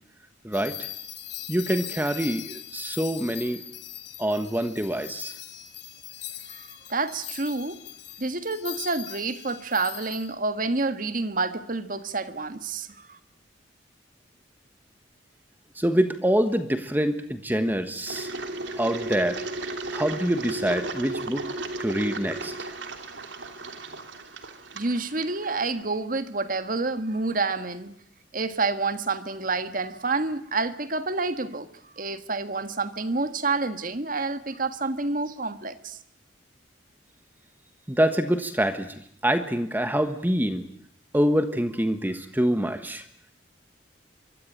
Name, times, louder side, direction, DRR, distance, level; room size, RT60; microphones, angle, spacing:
voice 1, 0.4-0.9 1.5-3.6 4.2-5.4 15.7-18.3 18.8-19.5 19.9-21.4 21.8-22.5 37.9-38.9 39.2-40.6 41.1-43.0, equal, 10° right, 1.4 m, -25 dB
sound 1, 0.5-10.3, left 12 dB, 60° left, 3.1 m, -40 dB
voice 2, 6.5-7.8 8.2-13.2 24.7-27.9 28.3-31.7 32.0-36.0, right 3 dB, 45° right, 1.6 m, -28 dB
Engine, 18.1-25.8, right 2 dB, 70° right, 3.0 m, -35 dB
25.0 x 24.0 x 9.1 m
head